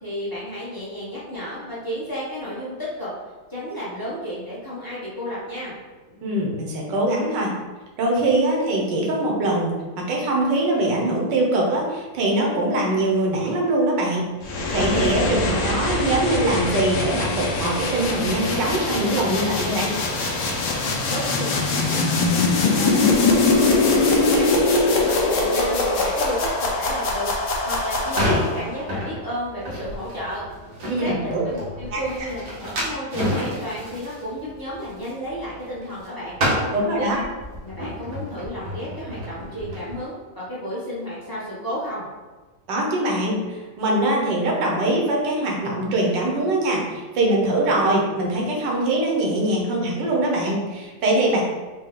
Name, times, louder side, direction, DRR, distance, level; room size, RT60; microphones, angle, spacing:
voice 1, 0.0-3.1 3.5-5.7 21.1-24.6 24.9-27.3 27.6-30.4 31.0-36.4 36.8-37.1 37.6-42.0, equal, 15° left, -9 dB, 0.8 m, -32 dB
voice 2, 6.2-7.5 8.0-19.9 30.9-31.4 31.9-32.0 36.7-37.2 42.7-51.4, right 1 dB, 75° right, -2 dB, 1.5 m, -22 dB
sound 1, 14.4-28.7, left 3 dB, 70° left, 1.2 m, -22 dB
sound 2, 27.9-36.1 36.3-40.0, equal, 90° right, 1.8 m, -29 dB
4.4 x 2.3 x 3.7 m, 1.3 s
omnidirectional pair, 2.0 m